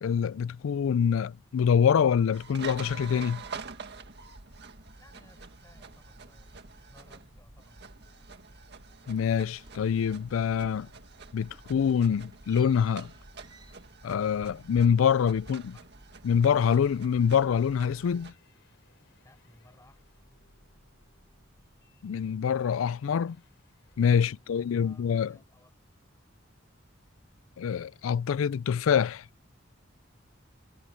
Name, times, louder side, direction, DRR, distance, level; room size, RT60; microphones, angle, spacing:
voice 1, 0.0-3.4 9.1-10.9 11.3-13.1 14.0-15.7 16.2-18.3 22.0-23.4 24.0-25.3 27.6-29.2, left 7 dB, 85° left, 0.4 m, -25 dB
sound 1, 2.3-18.3, right 4 dB, 60° right, 1.9 m, -47 dB
voice 2, 4.9-8.0 15.7-15.9 19.2-20.3 24.2-25.7, left 1 dB, 15° left, 5.2 m, -60 dB
sound 2, 10.6-11.1 11.4-16.3 16.6-17.9, right 3 dB, 25° right, 2.9 m, -63 dB
sound 3, 18.1-24.5, left 2 dB, 65° left, 4.3 m, -65 dB
head